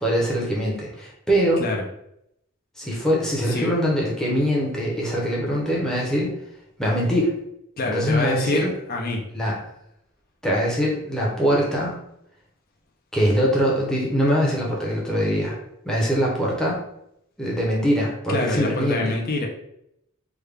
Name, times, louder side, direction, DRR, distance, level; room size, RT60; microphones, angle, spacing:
voice 1, 0.0-1.6 2.8-6.3 6.8-7.3 7.8-8.7 9.3-9.5 10.4-11.9 13.1-15.6 15.8-16.8 17.4-19.2, equal, 5° left, -4 dB, 0.7 m, -22 dB
voice 2, 7.8-9.2 18.3-19.5, left 2 dB, 45° left, 1 dB, 0.5 m, -25 dB
3.5 x 2.2 x 3.3 m, 0.77 s
head